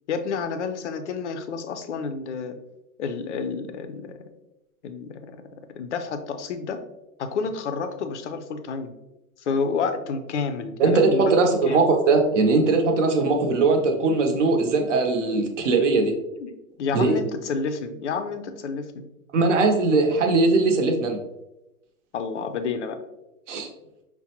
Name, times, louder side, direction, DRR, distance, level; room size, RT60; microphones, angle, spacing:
voice 1, 0.1-2.6 3.0-4.2 4.8-5.3 5.8-6.8 7.2-8.9 9.4-11.3 11.7-11.8 16.4-16.5 16.8-19.1 22.1-23.0, left 5 dB, 50° left, 8 dB, 0.4 m, -29 dB
voice 2, 10.8-16.1 16.9-17.2 19.3-21.2 23.5-23.7, right 3 dB, 55° right, 3 dB, 0.7 m, -20 dB
5.8 x 2.1 x 2.8 m, 0.94 s
hypercardioid pair, 175°, 45 cm